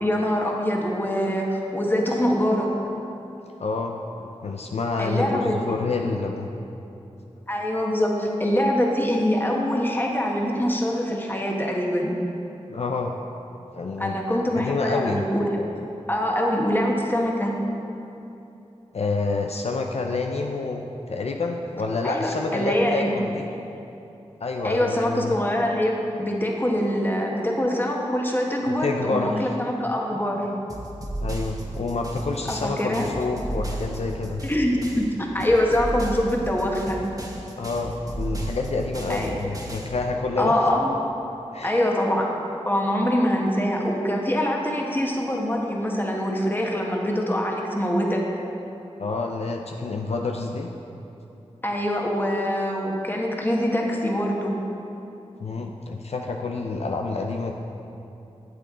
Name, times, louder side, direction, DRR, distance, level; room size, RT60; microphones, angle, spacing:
voice 1, 0.0-2.7 5.0-5.6 7.5-12.2 14.0-15.6 16.1-17.5 22.0-23.1 24.6-30.5 32.5-33.1 34.4-37.0 39.1-39.3 40.4-40.9 41.6-42.3 42.7-48.2 51.6-54.6, equal, 15° left, -1 dB, 1.4 m, -24 dB
voice 2, 3.6-6.5 12.7-13.1 13.7-14.2 14.5-15.2 18.9-23.5 24.4-25.4 28.7-29.5 31.2-34.4 37.6-40.6 41.5-41.8 49.0-50.7 55.4-57.5, left 3 dB, 65° left, 2 dB, 0.5 m, -28 dB
sound 1, 30.7-35.1 35.4-40.0, right 2 dB, 30° right, 1.2 m, -34 dB
9.4 x 7.6 x 3.8 m, 2.9 s
cardioid pair, 40°, 12 cm